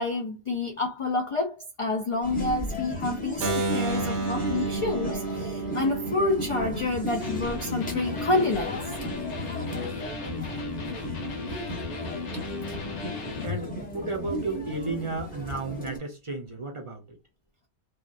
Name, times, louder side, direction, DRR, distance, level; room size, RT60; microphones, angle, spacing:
voice 1, 0.0-8.8, left 2 dB, 60° left, 0.3 m, -28 dB
sound 1, 2.2-16.0, equal, 10° left, 0.7 m, -35 dB
Keyboard (musical), 3.4-9.2, right 3 dB, 75° right, 0.9 m, -33 dB
Electric guitar, 7.2-13.6, left 6 dB, 80° left, 1.0 m, -36 dB
voice 2, 13.0-17.2, right 3 dB, 35° right, 0.6 m, -34 dB
2.7 x 2.2 x 2.3 m
omnidirectional pair, 1.2 m